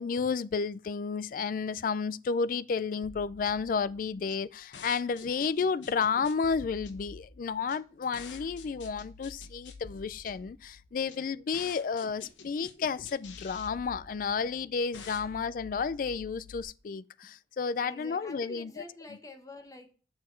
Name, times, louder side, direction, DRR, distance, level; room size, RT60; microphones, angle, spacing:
voice 1, 0.0-18.7, left 5 dB, 50° left, 0.3 m, -32 dB
sound 1, 3.0-16.6, left 4 dB, 85° left, 0.9 m, -49 dB
voice 2, 17.8-19.9, left 2 dB, 20° left, 0.9 m, -48 dB
6.3 x 6.3 x 4.4 m
head